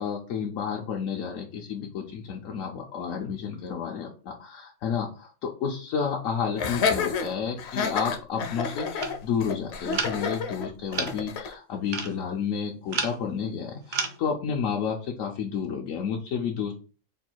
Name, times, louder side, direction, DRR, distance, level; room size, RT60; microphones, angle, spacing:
voice 1, 0.0-16.7, left 6 dB, 90° left, -1 dB, 1.0 m, -31 dB
Laughter, 6.6-11.5, left 5 dB, 65° left, 0.8 m, -29 dB
sound 1, 9.0-9.2 9.9-10.4 10.9-11.3 11.9-12.2 12.9-13.2 13.9-14.2, right 4 dB, 50° right, 0.6 m, -31 dB
3.4 x 2.3 x 4.4 m, 0.37 s
omnidirectional pair, 1.3 m